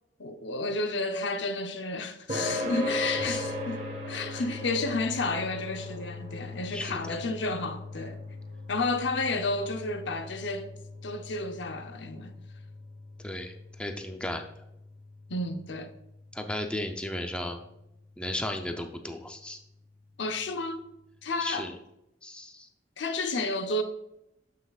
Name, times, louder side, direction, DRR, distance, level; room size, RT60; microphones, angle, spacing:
voice 1, 0.2-8.2 8.7-10.7 11.0-12.3 15.3-15.9 20.2-20.8 21.2-21.7 23.0-23.8, left 2 dB, 80° left, 0.8 m, -31 dB
sound 1, 2.3-17.2, left 2 dB, 40° right, 1.5 m, -38 dB
voice 2, 3.1-3.4 6.7-7.2 13.2-14.4 16.3-17.6 18.2-19.6 21.4-21.7 22.2-22.7, left 1 dB, 5° left, 0.5 m, -35 dB
12.0 x 5.7 x 2.4 m
head